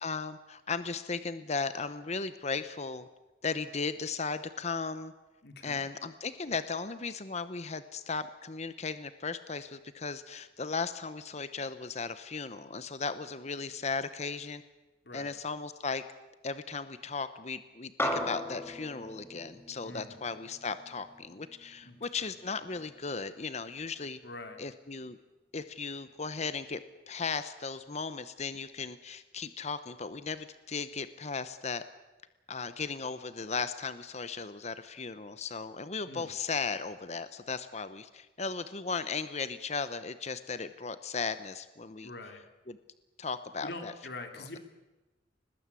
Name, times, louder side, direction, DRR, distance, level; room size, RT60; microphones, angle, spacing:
voice 1, 0.0-3.1 3.4-5.1 5.6-14.6 15.1-16.0 16.4-24.2 24.6-25.2 25.5-26.8 27.1-31.8 32.5-42.1 42.7-42.8 43.2-43.9, left 4 dB, 35° left, 12 dB, 0.9 m, -36 dB
voice 2, 5.4-5.8 15.0-15.3 19.8-20.2 21.8-22.0 24.2-24.6 36.1-36.3 42.0-42.4 43.6-44.6, left 2 dB, 60° left, 6 dB, 2.8 m, -44 dB
sound 1, 18.0-22.6, left 1 dB, 10° left, 2.3 m, -38 dB
22.5 x 20.0 x 8.4 m, 1.1 s
head